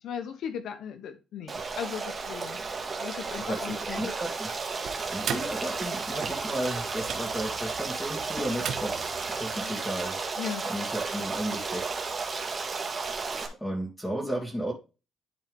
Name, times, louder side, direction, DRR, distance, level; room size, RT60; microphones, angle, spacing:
voice 1, 0.0-2.6 3.0-4.1 9.5-9.8 10.4-10.6, left 8 dB, 75° left, 8 dB, 1.1 m, -37 dB
Stream, 1.5-13.5, right 4 dB, 35° right, 2.0 m, -33 dB
voice 2, 3.5-4.5 5.1-10.2 10.7-12.0 13.6-14.7, equal, 10° left, -3 dB, 2.5 m, -34 dB
sound 1, 4.8-9.6, right 8 dB, 70° right, 1.3 m, -39 dB
11.0 x 4.4 x 3.5 m, 0.30 s
cardioid pair, 90°, 0 cm